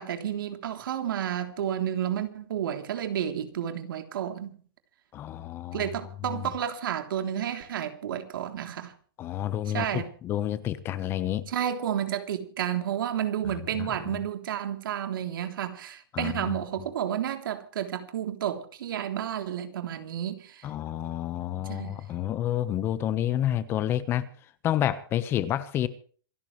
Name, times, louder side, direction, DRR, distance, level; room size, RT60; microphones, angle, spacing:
voice 1, 0.0-4.6 5.7-8.9 9.7-10.1 11.5-20.6 21.7-22.0, right 10 dB, 75° right, 3.3 m, -31 dB
voice 2, 5.1-5.9 6.3-6.5 9.2-11.5 13.4-13.9 16.1-16.6 20.6-24.2 24.6-25.9, left 11 dB, 20° left, 1.1 m, -29 dB
27.0 x 13.5 x 3.3 m
supercardioid pair, 170°, 11 cm